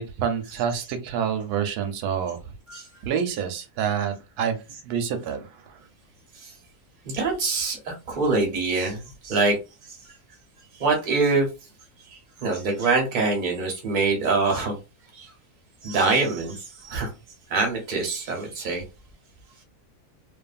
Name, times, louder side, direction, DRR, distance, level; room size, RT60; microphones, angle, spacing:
voice 1, 0.0-2.4 3.0-4.6 4.8-5.8, right 7 dB, 90° right, 1.1 m, -27 dB
voice 2, 7.0-9.6 10.8-11.5 12.4-14.8 15.1-15.3 15.8-16.6 16.8-17.1 17.5-18.8, right 3 dB, 40° right, 0.8 m, -24 dB
2.6 x 2.5 x 2.4 m
omnidirectional pair, 1.6 m